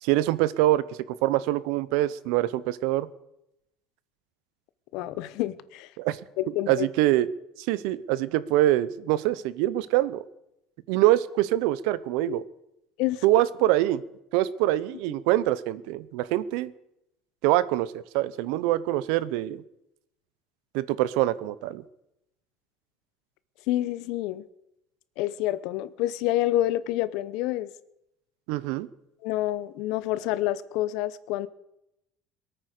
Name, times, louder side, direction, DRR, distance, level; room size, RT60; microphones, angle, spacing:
voice 1, 0.0-3.1 6.0-6.2 6.7-7.3 7.6-10.2 10.9-12.4 13.2-14.0 14.3-16.7 17.4-19.6 20.7-21.8 28.5-28.9, right 15 dB, 75° right, 18 dB, 0.8 m, -24 dB
voice 2, 4.9-5.9 6.4-6.9 12.2-12.3 13.0-13.2 23.7-24.4 25.2-27.7 29.2-31.5, left 15 dB, 65° left, 16 dB, 0.8 m, -28 dB
22.5 x 9.0 x 6.7 m, 0.84 s
cardioid pair, 160°, 0 cm